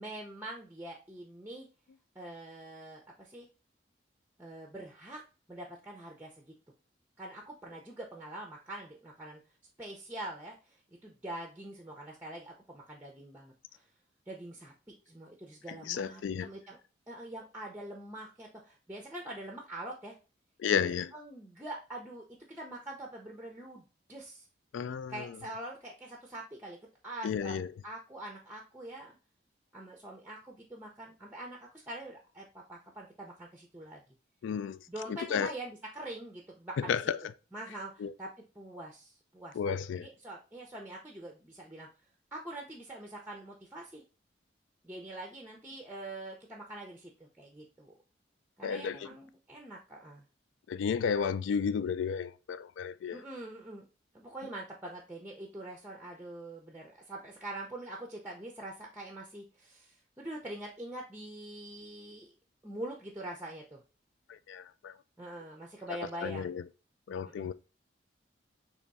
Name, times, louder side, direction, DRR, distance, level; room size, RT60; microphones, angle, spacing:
voice 1, 0.0-1.7 2.2-3.5 4.4-5.2 5.5-6.5 7.2-9.4 9.8-10.8 11.0-13.8 14.3-14.7 15.1-16.8 17.1-20.2 20.7-23.8 24.1-24.5 25.1-26.8 27.0-29.2 29.7-34.0 34.9-37.0 37.5-38.3 38.6-41.9 42.3-44.0 44.8-48.0 48.6-50.2 53.1-53.9 54.1-62.3 62.6-63.8 65.2-66.5 67.3-67.5, right 1 dB, 10° right, 0.5 m, -44 dB
voice 2, 15.9-16.5 20.6-21.1 24.7-25.3 27.2-27.7 34.4-34.8 35.1-35.5 36.8-37.2 38.0-38.1 39.5-40.1 48.6-49.1 50.7-53.2 64.3-64.9 66.2-66.6 67.1-67.5, left 7 dB, 80° left, 0.3 m, -32 dB
3.5 x 3.0 x 4.0 m
head